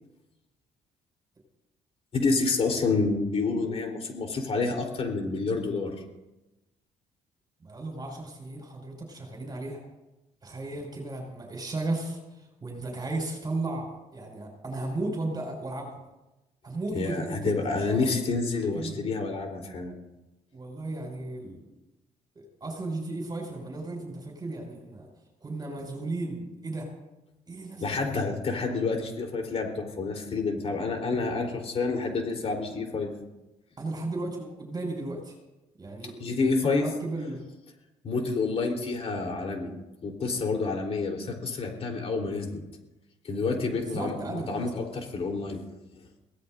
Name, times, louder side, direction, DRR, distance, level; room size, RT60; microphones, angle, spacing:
voice 1, 2.1-5.9 16.9-20.0 27.8-33.1 36.2-36.8 38.0-39.7 40.0-42.6 43.2-45.6, left 4 dB, 45° left, 1 dB, 3.8 m, -28 dB
voice 2, 7.6-9.8 10.4-12.2 12.6-16.0 16.6-18.2 18.7-19.0 20.5-21.6 22.4-25.1 25.4-26.9 27.5-28.1 33.8-35.3 35.8-37.4 43.7-44.5, right 2 dB, 30° right, 0 dB, 5.9 m, -35 dB
22.5 x 17.0 x 2.7 m, 0.99 s
cardioid pair, 85°, 14 cm